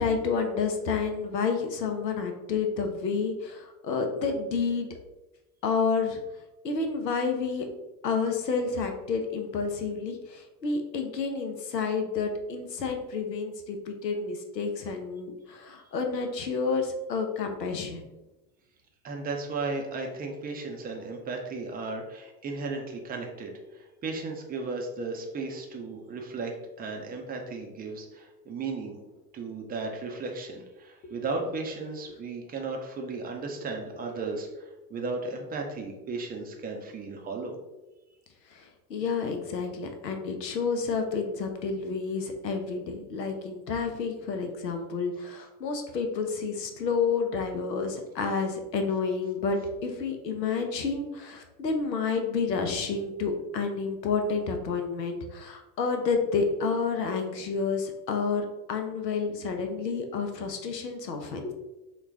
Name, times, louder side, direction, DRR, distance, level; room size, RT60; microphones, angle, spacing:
voice 1, 0.0-4.9 5.6-6.2 6.6-7.8 8.0-18.1 38.5-61.5, left 5 dB, 80° left, 5 dB, 0.7 m, -30 dB
voice 2, 19.0-29.0 29.3-37.6, right 3 dB, 20° right, 2 dB, 0.5 m, -35 dB
3.9 x 2.2 x 3.3 m, 1.0 s
figure-of-eight pair, 70°, 49 cm